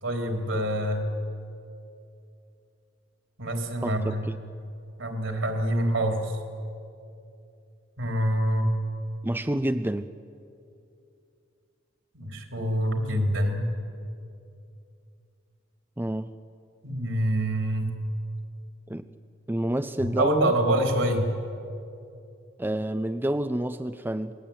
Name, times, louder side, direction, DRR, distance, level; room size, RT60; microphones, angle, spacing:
voice 1, 0.0-1.1 3.4-4.2 5.0-6.4 8.0-8.7 12.1-13.7 16.8-17.9 20.0-21.3, right 1 dB, 75° right, 2 dB, 4.0 m, -26 dB
voice 2, 3.8-4.4 9.2-10.1 16.0-16.3 18.9-19.0 19.5-20.5 22.6-24.3, right 1 dB, 10° right, 10 dB, 0.5 m, -28 dB
27.5 x 21.0 x 8.9 m, 2.6 s
head